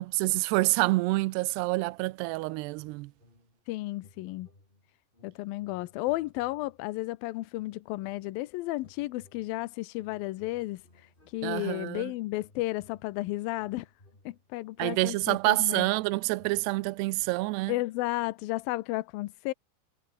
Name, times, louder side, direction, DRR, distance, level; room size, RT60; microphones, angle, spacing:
voice 1, 0.0-3.1 11.4-12.1 14.8-17.7, right 22 dB, 85° right, 2.7 m, -27 dB
sound 1, 2.7-3.7 3.9-7.0 7.5-8.4 8.7-11.8 12.3-17.7, left 1 dB, 10° left, 4.6 m, -61 dB
voice 2, 3.7-4.5 5.2-13.9 14.3-15.9 17.7-19.5, left 18 dB, 75° left, 2.2 m, -33 dB
omnidirectional pair, 4.8 m